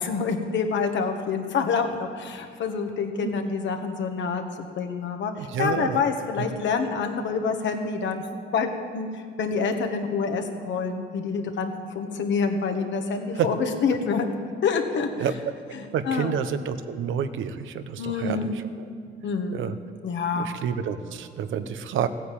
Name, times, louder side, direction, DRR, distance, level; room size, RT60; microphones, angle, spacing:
voice 1, 0.0-8.2 8.5-14.3 14.6-15.3 15.7-16.3 18.0-18.6 19.2-20.5, left 5 dB, 70° left, 5 dB, 1.7 m, -27 dB
voice 2, 5.4-6.0 13.4-13.5 15.2-15.3 15.9-18.5 19.5-19.7 20.3-22.1, right 8 dB, 80° right, 11 dB, 0.9 m, -28 dB
15.0 x 9.3 x 8.7 m, 2.2 s
cardioid pair, 90°, 20 cm